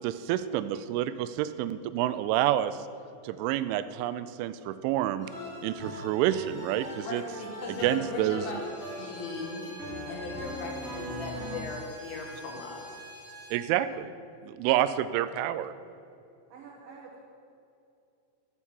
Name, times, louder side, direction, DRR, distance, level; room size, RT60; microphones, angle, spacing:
voice 1, 0.0-2.9 3.2-5.3 5.6-7.2 7.7-8.4 13.5-14.1 14.4-15.7, right 12 dB, 85° right, 13 dB, 2.9 m, -28 dB
Space Epic, 5.2-11.6, left 1 dB, 30° right, 1.6 m, -41 dB
voice 2, 7.0-12.9, left 3 dB, 80° left, -1 dB, 4.0 m, -38 dB
Bowed string instrument, 8.4-13.7, right 1 dB, 25° left, 2.0 m, -46 dB
voice 3, 16.5-17.2, right 5 dB, 65° right, -3 dB, 2.3 m, -48 dB
13.5 x 6.4 x 7.3 m, 2.6 s
omnidirectional pair, 5.6 m